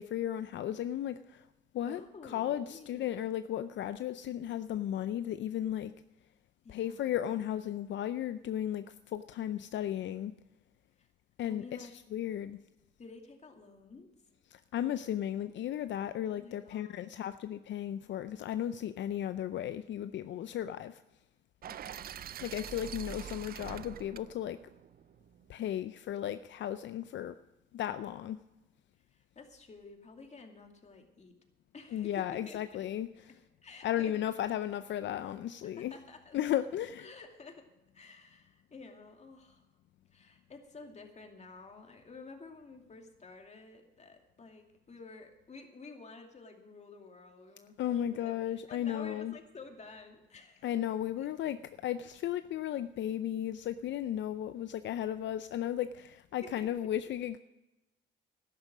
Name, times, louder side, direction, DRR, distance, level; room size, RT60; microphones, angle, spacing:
voice 1, 0.0-1.5 1.7-5.9 6.7-10.3 11.4-12.6 14.5-21.0 22.4-24.6 25.5-27.3 27.7-28.4 31.9-33.1 33.8-35.9 36.3-37.1 47.8-49.3 50.6-51.6 51.8-57.4, left 11 dB, 65° left, 11 dB, 0.5 m, -35 dB
voice 2, 1.9-3.2 6.6-7.1 11.0-11.1 11.5-12.0 13.0-14.1 16.2-17.2 21.7-22.2 29.1-31.3 31.7-32.9 33.6-34.2 35.7-36.4 37.0-37.7 37.9-39.7 40.1-50.7 51.2-51.3 56.4-56.7, left 4 dB, 35° left, 3 dB, 2.5 m, -51 dB
sound 1, 21.6-25.7, right 10 dB, 50° right, 0.5 m, -45 dB
12.5 x 10.5 x 6.2 m, 1.0 s
cardioid pair, 90°, 20 cm